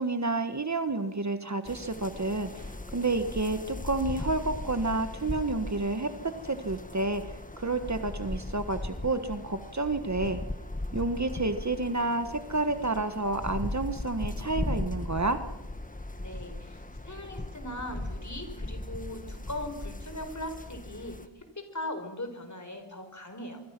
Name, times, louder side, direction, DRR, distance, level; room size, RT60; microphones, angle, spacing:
voice 1, 0.0-10.4 10.9-15.4, right 2 dB, 35° right, 9 dB, 1.4 m, -30 dB
sound 1, 1.6-21.3, left 2 dB, 15° left, 1.4 m, -38 dB
voice 2, 16.1-23.6, left 1 dB, 40° left, 7 dB, 5.0 m, -39 dB
25.5 x 24.0 x 6.1 m, 0.93 s
wide cardioid pair, 75°, 46 cm